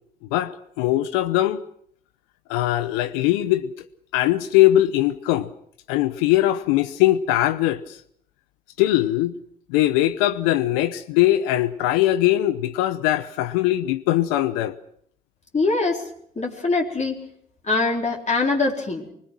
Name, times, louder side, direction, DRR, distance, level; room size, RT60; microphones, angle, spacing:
voice 1, 0.3-1.6 2.5-3.7 4.1-5.5 5.9-7.8 8.8-9.3 9.7-14.7, left 14 dB, 75° left, 0.8 m, -21 dB
voice 2, 15.5-16.1 16.4-17.3 17.6-19.1, left 3 dB, 35° left, 4.0 m, -23 dB
24.0 x 21.0 x 6.1 m
hypercardioid pair, 50°, 21 cm